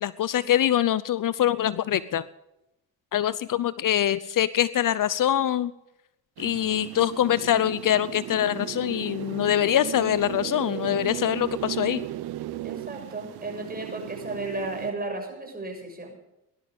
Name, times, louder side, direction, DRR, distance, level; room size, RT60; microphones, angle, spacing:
voice 1, 0.0-2.2 3.1-5.7 6.4-12.1, left 11 dB, 55° left, 17 dB, 0.7 m, -24 dB
sound 1, 6.4-14.9, right 14 dB, 80° right, 0.9 m, -36 dB
voice 2, 12.6-16.2, right 2 dB, 25° right, 2 dB, 6.7 m, -34 dB
18.5 x 12.0 x 5.2 m, 0.89 s
cardioid pair, 75°, 39 cm